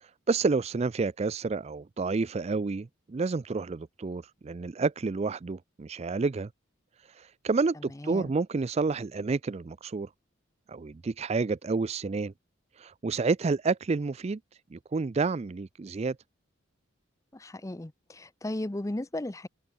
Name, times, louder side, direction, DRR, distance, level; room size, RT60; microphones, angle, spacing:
voice 1, 0.0-6.5 7.1-10.1 10.7-12.3 12.8-14.4 14.7-16.2, right 4 dB, 30° right, 0.4 m, -29 dB
voice 2, 8.0-8.3 17.3-19.5, left 1 dB, 15° left, 0.6 m, -35 dB
head